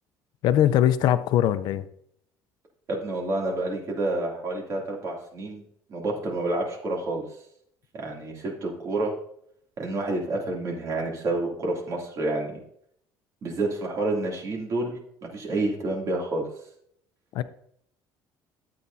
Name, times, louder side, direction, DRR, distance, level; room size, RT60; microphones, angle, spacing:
voice 1, 0.4-1.9 17.3-17.4, left 11 dB, 65° left, 13 dB, 0.5 m, -21 dB
voice 2, 2.9-5.6 5.9-7.2 7.9-9.1 9.8-12.6 13.4-16.4, right 2 dB, 40° right, -1 dB, 2.7 m, -29 dB
12.5 x 8.4 x 2.7 m, 0.69 s
cardioid pair, 130°, 8 cm